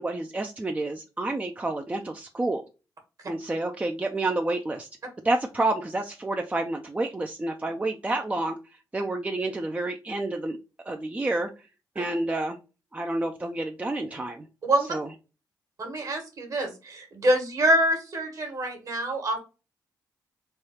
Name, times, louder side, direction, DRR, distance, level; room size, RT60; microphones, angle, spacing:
voice 1, 0.0-2.6 3.3-4.9 5.2-10.6 10.8-11.7 12.0-12.6 12.9-14.5 14.9-15.1, right 2 dB, 20° right, 4 dB, 0.5 m, -29 dB
voice 2, 15.8-19.4, right 1 dB, 50° right, 4 dB, 1.4 m, -25 dB
3.3 x 2.3 x 4.1 m, 0.31 s
cardioid pair, 70°, 8 cm